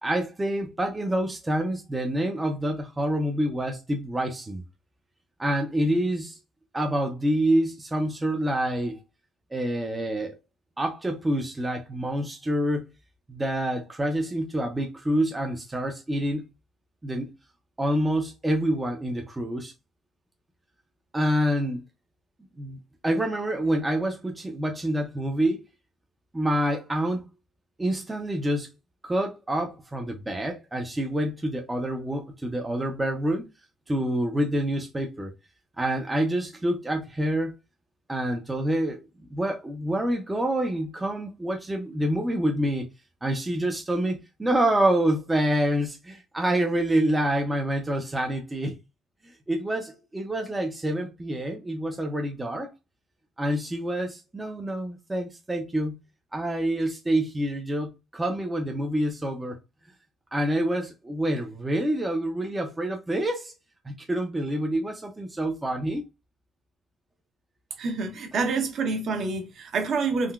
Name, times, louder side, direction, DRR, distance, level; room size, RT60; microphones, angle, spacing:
voice 1, 0.0-4.6 5.4-6.4 6.7-9.0 9.5-10.4 10.8-12.9 13.3-16.4 17.0-17.3 17.8-19.7 21.1-21.8 22.6-22.8 23.0-25.6 26.3-27.3 27.8-28.7 29.0-33.4 33.9-35.3 35.8-37.5 38.1-39.0 39.3-42.9 43.2-48.8 49.5-52.7 53.4-55.9 56.3-59.6 60.3-63.5 63.9-66.0, right 1 dB, 10° right, 0.4 m, -27 dB
voice 2, 67.8-70.3, right 4 dB, 50° right, 0.7 m, -27 dB
3.6 x 2.1 x 2.3 m
cardioid pair, 145°, 0 cm